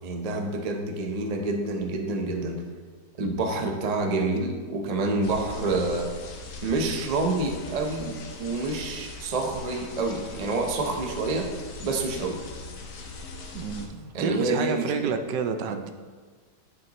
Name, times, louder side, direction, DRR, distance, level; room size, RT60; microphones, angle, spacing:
voice 1, 0.0-2.6 3.2-6.1 6.6-11.5 11.8-12.4 14.1-15.1, right 2 dB, 45° right, 3 dB, 0.5 m, -28 dB
sound 1, 5.2-13.9, left 3 dB, 75° left, 1.5 m, -40 dB
voice 2, 13.5-15.9, right 6 dB, 80° right, 7 dB, 1.2 m, -29 dB
10.5 x 6.5 x 3.0 m, 1.5 s
omnidirectional pair, 1.9 m